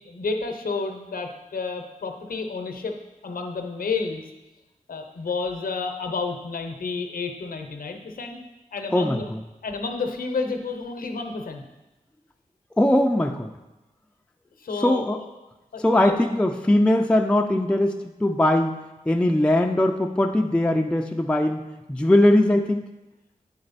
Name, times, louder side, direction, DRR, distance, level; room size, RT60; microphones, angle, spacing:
voice 1, 0.1-2.9 3.2-4.2 4.9-8.4 8.7-9.2 9.6-11.6 14.6-15.2 15.7-16.2, left 4 dB, 80° left, 5 dB, 0.7 m, -30 dB
voice 2, 8.9-9.4 12.8-13.5 14.8-15.2 15.8-18.8 19.1-22.9, left 1 dB, 5° left, 3 dB, 0.4 m, -21 dB
8.6 x 4.3 x 4.1 m, 1.0 s
cardioid pair, 55°, 14 cm